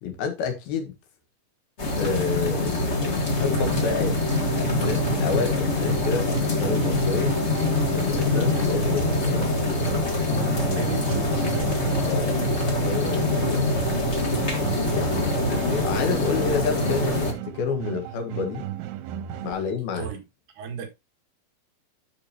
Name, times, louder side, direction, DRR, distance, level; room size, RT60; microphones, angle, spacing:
voice 1, 0.0-1.0 2.0-4.2 4.4-7.4 7.9-10.0 12.0-13.8 14.9-18.7 19.4-20.1, left 5 dB, 75° left, 3.5 m, -30 dB
sound 1, 1.8-17.3, left 2 dB, 50° left, 0.8 m, -24 dB
sound 2, 3.5-19.5, right 12 dB, 90° right, 2.7 m, -35 dB
voice 2, 9.9-11.6 19.4-19.5 20.0-20.2 20.5-20.9, right 7 dB, 60° right, 3.1 m, -36 dB
12.5 x 5.1 x 2.9 m
omnidirectional pair, 4.4 m